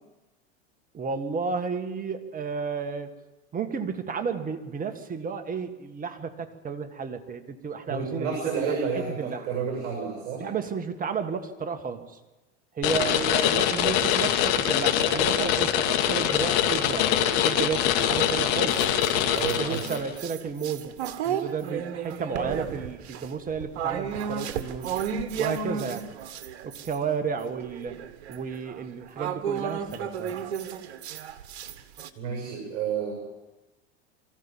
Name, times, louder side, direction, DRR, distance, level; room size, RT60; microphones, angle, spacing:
voice 1, 0.9-3.1 3.5-8.3 8.6-9.5 10.4-12.2 12.7-18.8 19.6-20.9 21.2-25.0 25.4-26.1 26.6-30.4, right 5 dB, 25° right, 8 dB, 1.7 m, -32 dB
voice 2, 7.9-10.5 19.3-20.0 32.2-33.2, right 6 dB, 50° right, 0 dB, 7.1 m, -30 dB
sound 1, 12.8-20.1, left 10 dB, 60° left, 2.3 m, -24 dB
sound 2, 16.1-17.5 18.1-27.0 27.3-32.1, right 8 dB, 70° right, 1.5 m, -34 dB
24.0 x 14.5 x 7.3 m, 1.1 s
hypercardioid pair, 105°, 34 cm